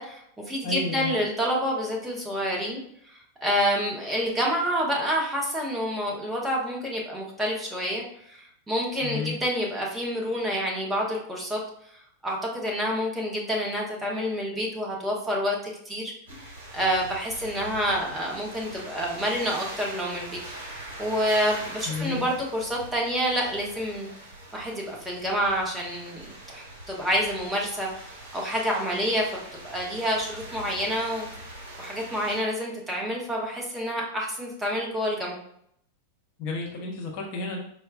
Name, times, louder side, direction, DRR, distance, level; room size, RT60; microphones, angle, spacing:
voice 1, 0.0-2.8 3.1-11.6 12.2-20.4 21.0-24.1 24.5-29.2 29.6-31.3 31.8-35.4, equal, 10° right, -3 dB, 0.8 m, -28 dB
voice 2, 0.6-1.1 9.0-9.3 21.9-22.3 36.4-37.6, left 3 dB, 45° left, 0 dB, 0.7 m, -32 dB
sound 1, 16.3-32.4, right 1 dB, 65° right, 1.0 m, -42 dB
4.3 x 2.2 x 2.3 m, 0.70 s
figure-of-eight pair, 90°, 0 cm